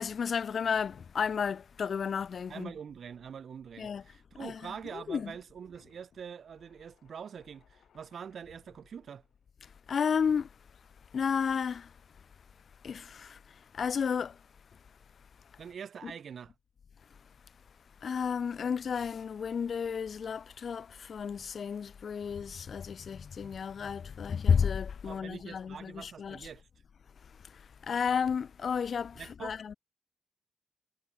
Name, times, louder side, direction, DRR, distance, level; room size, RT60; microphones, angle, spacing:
voice 1, 0.0-2.7 3.8-4.0 4.4-5.3 9.9-10.5 11.1-11.9 12.8-14.4 16.0-16.1 18.0-26.5 27.4-29.7, left 6 dB, 50° left, 0.6 m, -32 dB
voice 2, 2.5-9.2 15.6-16.5 25.0-26.7 29.2-29.6, right 7 dB, 60° right, 0.6 m, -44 dB
sound 1, 4.6-12.8 13.1-14.8 15.3-15.8, left 9 dB, 75° left, 8.0 m, -69 dB
wide cardioid pair, 155°, 0 cm